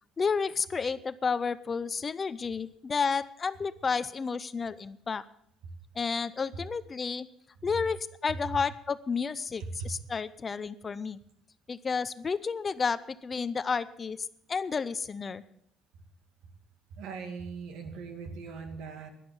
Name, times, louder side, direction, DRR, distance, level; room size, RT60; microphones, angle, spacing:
voice 1, 0.2-5.2 5.9-7.3 7.6-11.2 11.7-15.4, left 5 dB, 25° left, 15 dB, 0.5 m, -31 dB
voice 2, 16.9-19.1, right 5 dB, 75° right, 6 dB, 2.3 m, -40 dB
12.0 x 11.0 x 7.1 m, 0.73 s
cardioid pair, 145°, 0 cm